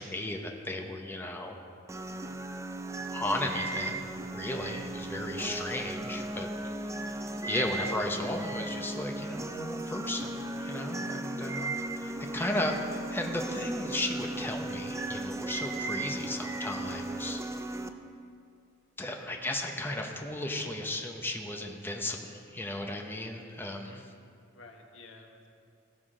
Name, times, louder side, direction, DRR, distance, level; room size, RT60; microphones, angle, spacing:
voice 1, 0.0-1.6 3.1-4.0 4.3-12.8 13.1-17.4 19.0-24.0, left 1 dB, 10° left, 2 dB, 0.8 m, -35 dB
sound 1, 1.9-17.9, right 2 dB, 15° right, 0.4 m, -36 dB
voice 2, 23.8-25.5, left 2 dB, 80° left, 2 dB, 1.2 m, -54 dB
16.5 x 5.8 x 5.0 m, 2.3 s
head